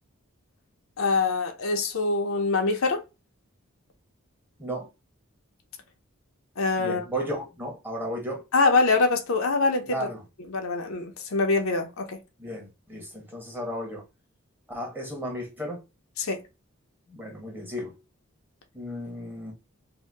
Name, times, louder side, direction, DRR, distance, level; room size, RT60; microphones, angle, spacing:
voice 1, 1.0-3.0 6.6-7.0 8.5-10.1 10.5-12.2 16.2-16.4, left 3 dB, 75° left, 0.7 m, -24 dB
voice 2, 6.8-8.4 9.9-10.2 12.4-14.0 14.7-15.8 17.1-17.9 18.7-19.5, equal, 10° right, 1.0 m, -34 dB
2.7 x 2.2 x 3.3 m
head